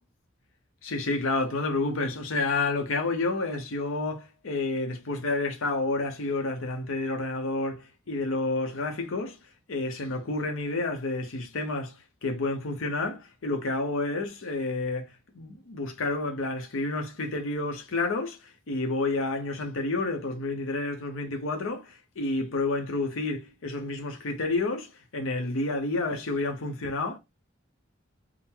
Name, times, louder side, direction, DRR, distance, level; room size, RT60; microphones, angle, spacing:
voice 1, 0.8-9.4 9.7-27.2, left 3 dB, 75° left, 0.7 m, -30 dB
3.7 x 2.0 x 4.3 m
head